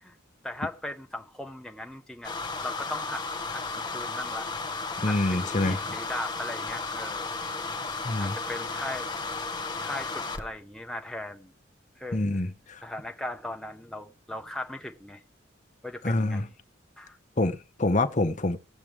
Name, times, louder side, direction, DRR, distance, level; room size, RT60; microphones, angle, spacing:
voice 1, 0.4-2.4 2.6-4.5 5.0-7.4 8.2-9.1 9.8-11.5 12.0-12.4 12.8-15.2 15.8-16.5 17.0-17.2, left 1 dB, 5° left, 0.7 m, -38 dB
sound 1, 2.2-10.5, left 3 dB, 20° left, 1.7 m, -34 dB
voice 2, 5.0-6.0 8.0-8.4 12.1-12.8 16.0-16.5 17.4-18.6, left 2 dB, 35° left, 0.7 m, -26 dB
18.0 x 7.5 x 3.4 m
head